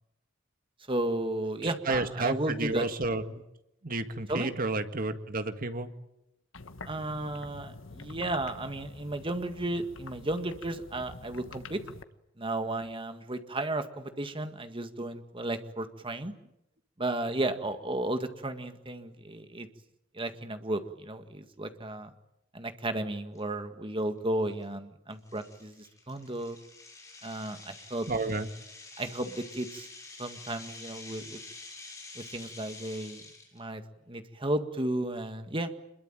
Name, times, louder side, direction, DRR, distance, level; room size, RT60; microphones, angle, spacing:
voice 1, 0.9-2.9 4.3-4.5 6.9-11.8 12.4-16.3 17.0-19.7 20.1-22.1 22.5-26.6 27.2-28.1 29.0-29.9 30.2-31.4 32.2-33.2 33.5-33.8 34.1-35.7, right 1 dB, 25° right, 8 dB, 1.9 m, -34 dB
voice 2, 1.6-3.4 3.8-5.9 28.1-28.5, right 2 dB, 45° right, 8 dB, 1.9 m, -31 dB
sound 1, 6.5-12.0, left 3 dB, 90° left, 1.3 m, -46 dB
sound 2, 23.3-23.4 24.0-24.2 24.6-24.7 25.3-33.6, left 3 dB, 15° left, 6.5 m, -48 dB
27.0 x 22.0 x 9.0 m, 0.85 s
head